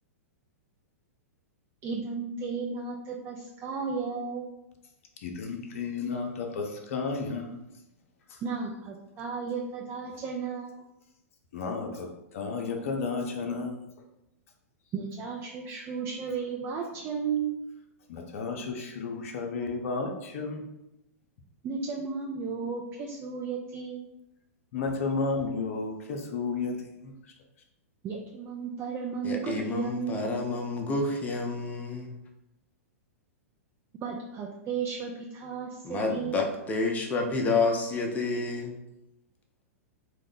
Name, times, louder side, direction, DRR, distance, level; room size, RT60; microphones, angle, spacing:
voice 1, 1.8-4.5 8.4-10.8 14.9-17.6 21.6-24.0 28.0-30.3 34.0-36.4, right 5 dB, 30° right, -1 dB, 0.4 m, -34 dB
voice 2, 5.2-7.6 8.3-8.4 11.5-13.9 18.1-20.7 24.7-26.7 27.0-27.1, left 4 dB, 60° left, 2 dB, 0.5 m, -32 dB
voice 3, 29.2-32.1 35.8-38.8, left 3 dB, 20° left, 1 dB, 0.6 m, -29 dB
2.8 x 2.1 x 3.7 m, 0.88 s
hypercardioid pair, 110°, 8 cm